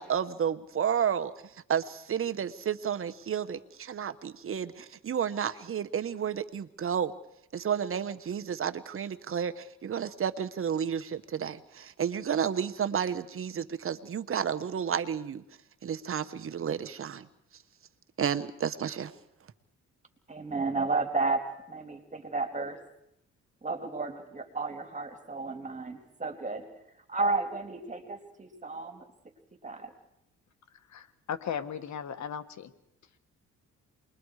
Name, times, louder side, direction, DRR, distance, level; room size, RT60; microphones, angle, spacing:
voice 1, 0.0-1.3 1.7-7.1 7.5-15.4 15.8-17.3 18.2-19.1, right 8 dB, 45° right, 10 dB, 1.2 m, -31 dB
voice 2, 20.3-22.8 23.6-26.7 27.1-29.1 29.6-29.9, right 3 dB, 25° right, 5 dB, 3.3 m, -32 dB
voice 3, 30.9-32.7, left 8 dB, 65° left, 10 dB, 1.7 m, -36 dB
28.5 x 22.0 x 4.9 m, 0.78 s
cardioid pair, 90°, 30 cm